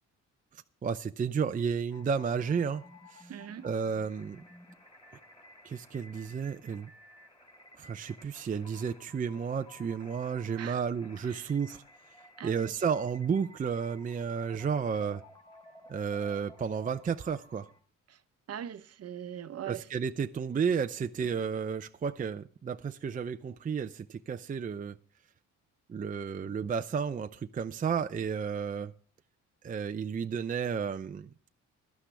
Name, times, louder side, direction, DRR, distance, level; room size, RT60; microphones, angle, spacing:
voice 1, 0.8-3.3 3.6-4.4 5.6-6.9 7.8-11.8 12.4-15.2 15.9-17.7 19.7-25.0 25.9-28.9 29.6-31.3, right 6 dB, 25° right, 0.5 m, -32 dB
sound 1, 1.9-17.8, left 1 dB, 15° left, 4.5 m, -55 dB
voice 2, 3.3-3.7 10.6-10.8 11.3-11.5 12.4-12.7 18.1-18.2 18.5-19.9, right 9 dB, 55° right, 0.9 m, -41 dB
16.0 x 11.5 x 3.4 m
cardioid pair, 90°, 30 cm